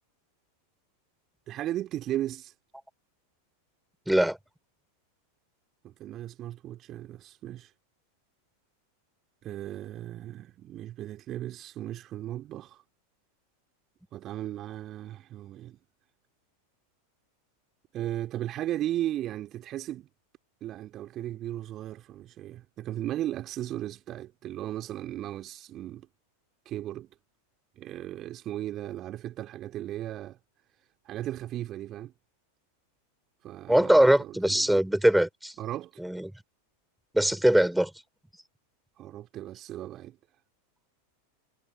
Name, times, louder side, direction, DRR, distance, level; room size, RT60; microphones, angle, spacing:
voice 1, 1.5-2.5 5.8-7.7 9.4-12.8 14.1-15.8 17.9-20.1 20.6-26.1 26.6-27.1 27.8-30.4 31.0-32.1 33.4-34.8 35.6-35.9 39.0-40.2, right 13 dB, 30° right, 3.1 m, -36 dB
voice 2, 4.1-4.4 33.7-35.5 36.0-36.3 37.1-37.9, right 1 dB, ahead, 5.2 m, -22 dB
figure-of-eight pair, 90°, 0 cm